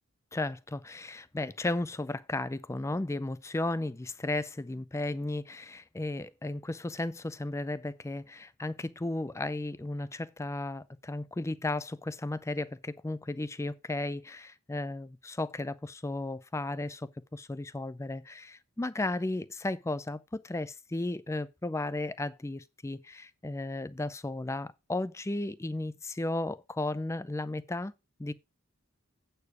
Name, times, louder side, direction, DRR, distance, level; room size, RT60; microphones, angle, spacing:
voice 1, 0.3-27.9 28.2-28.3, left 2 dB, 15° left, 0.4 m, -34 dB
8.5 x 6.7 x 4.7 m
head